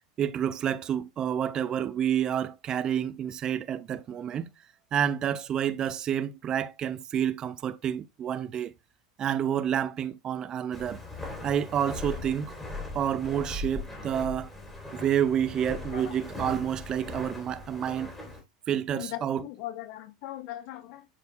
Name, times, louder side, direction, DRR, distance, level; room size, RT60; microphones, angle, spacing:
voice 1, 0.2-4.5 4.9-8.7 9.2-11.0 11.4-12.5 12.9-14.5 14.9-18.1 18.7-19.5, right 9 dB, 30° right, 0.5 m, -29 dB
Walk footsteps, 10.7-18.4, left 2 dB, 10° left, 2.8 m, -39 dB
voice 2, 18.9-21.1, left 14 dB, 50° left, 0.9 m, -39 dB
10.5 x 4.2 x 2.2 m
figure-of-eight pair, 80°, 2 cm